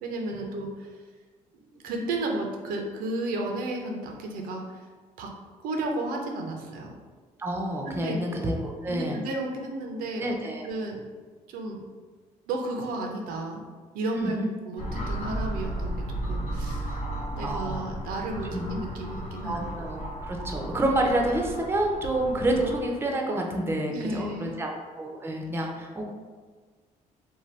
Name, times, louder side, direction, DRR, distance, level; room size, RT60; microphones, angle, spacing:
voice 1, 0.0-0.9 1.6-4.8 5.2-5.3 5.6-7.0 7.9-8.2 8.9-10.4 10.6-11.1 11.5-11.8 12.5-13.6 13.9-14.4 14.7-17.0 17.4-19.6 23.9-24.6, right 2 dB, 80° right, 1 dB, 0.5 m, -33 dB
voice 2, 7.4-9.2 10.2-10.6 14.1-14.5 17.4-17.8 18.5-18.6 19.4-26.1, right 1 dB, 15° right, 1 dB, 0.5 m, -28 dB
sound 1, 14.8-22.8, right 1 dB, 55° left, 0.8 m, -34 dB
2.7 x 2.1 x 3.1 m, 1.4 s
supercardioid pair, 80°, 15 cm